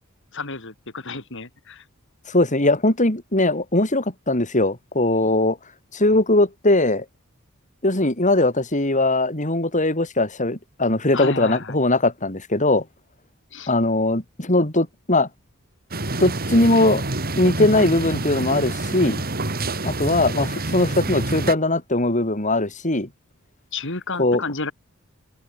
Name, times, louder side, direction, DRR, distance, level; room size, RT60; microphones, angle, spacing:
voice 1, 0.3-1.8 11.1-11.8 13.5-13.7 23.7-24.7, left 3 dB, 60° left, 5.1 m, -31 dB
voice 2, 2.3-5.6 5.9-7.1 7.8-12.8 13.7-15.3 16.2-17.0 17.4-19.2 19.8-23.1 24.2-24.4, left 2 dB, 35° left, 5.3 m, -20 dB
sound 1, 15.9-21.5, right 2 dB, 45° right, 4.2 m, -27 dB
open air
head